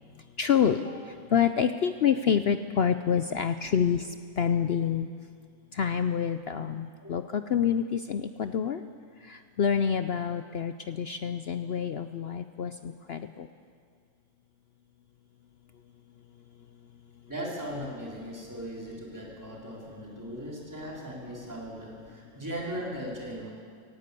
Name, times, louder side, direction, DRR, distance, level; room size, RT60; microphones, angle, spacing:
voice 1, 0.4-0.8 1.3-4.0 4.4-5.1 5.8-8.8 9.3-13.5, left 8 dB, 80° left, 9 dB, 0.5 m, -27 dB
voice 2, 17.3-23.5, equal, 10° right, -3 dB, 3.7 m, -38 dB
17.5 x 17.5 x 8.3 m, 2.2 s
omnidirectional pair, 1.8 m